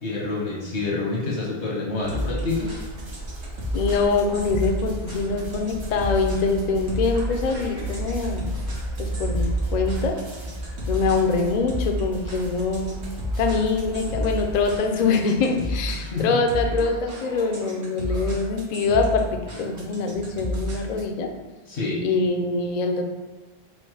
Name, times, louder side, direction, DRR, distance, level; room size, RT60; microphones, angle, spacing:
voice 1, 0.0-2.8 16.0-16.3 21.7-22.0, left 3 dB, 80° left, -3 dB, 1.4 m, -27 dB
sound 1, 2.0-14.8, right 2 dB, 35° right, 0.5 m, -34 dB
sound 2, 2.1-21.2, equal, 90° right, 1.4 m, -32 dB
voice 2, 3.7-8.5 9.0-10.2 10.9-13.1 13.4-21.3 22.0-23.0, left 4 dB, 50° left, 4 dB, 0.5 m, -24 dB
5.1 x 2.1 x 4.7 m, 1.3 s
omnidirectional pair, 1.1 m